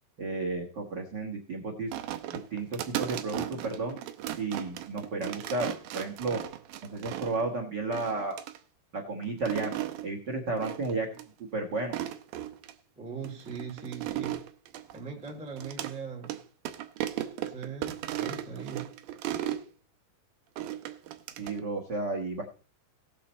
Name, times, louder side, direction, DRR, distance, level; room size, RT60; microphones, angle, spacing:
voice 1, 0.2-1.9 2.3-4.0 4.4-6.4 6.9-8.4 8.9-9.8 10.0-11.1 11.5-12.0 21.4-22.5, right 3 dB, 60° right, 3 dB, 1.1 m, -32 dB
sound 1, 1.9-7.5 7.9-8.6 9.2-10.1 10.6-10.9 11.2-11.3 11.8-12.7 13.2-15.9 16.2-16.4 16.6-19.6 20.6-21.6, right 12 dB, 85° right, 1.7 m, -36 dB
voice 2, 13.0-14.4 14.9-16.3 17.4-18.9, right 5 dB, 5° right, 1 dB, 0.6 m, -40 dB
18.5 x 6.8 x 4.3 m, 0.37 s
omnidirectional pair, 4.7 m